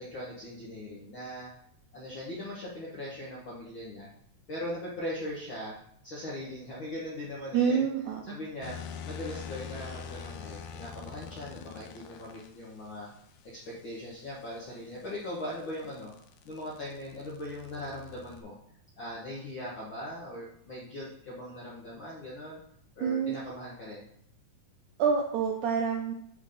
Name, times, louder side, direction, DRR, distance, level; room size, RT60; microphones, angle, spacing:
voice 1, 0.0-1.5 1.9-4.1 4.5-7.9 8.3-8.8 9.0-13.1 13.6-16.1 16.4-18.5 19.0-22.6 23.0-24.0, left 1 dB, 60° left, -6 dB, 1.3 m, -40 dB
voice 2, 7.5-8.4 23.0-23.4 25.0-26.1, right 6 dB, 80° right, 3 dB, 1.7 m, -27 dB
sound 1, 8.6-12.5 14.8-18.4, left 7 dB, 80° left, 2.3 m, -44 dB
10.0 x 3.6 x 3.9 m, 0.68 s
omnidirectional pair, 4.2 m